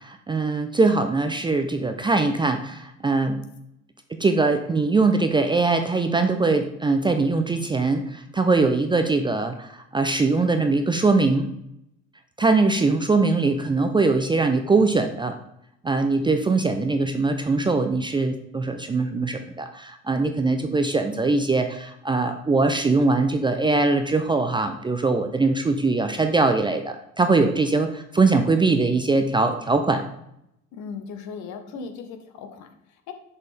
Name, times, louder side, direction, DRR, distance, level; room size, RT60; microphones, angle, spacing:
voice 1, 0.0-3.4 4.2-11.5 12.4-15.4 15.8-30.0 31.8-31.9, right 3 dB, 15° right, 6 dB, 0.5 m, -22 dB
voice 2, 30.7-33.1, left 6 dB, 50° left, 6 dB, 1.0 m, -38 dB
6.3 x 5.3 x 3.3 m, 0.79 s
figure-of-eight pair, 55°, 36 cm